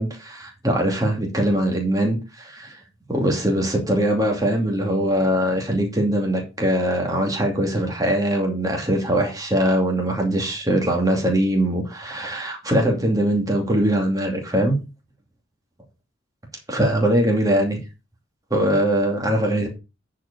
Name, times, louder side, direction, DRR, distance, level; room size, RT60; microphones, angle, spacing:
voice 1, 0.0-2.8 3.1-14.8 16.7-17.8 18.5-19.7, right 1 dB, 15° right, 2.5 m, -21 dB
9.9 x 5.0 x 5.4 m
head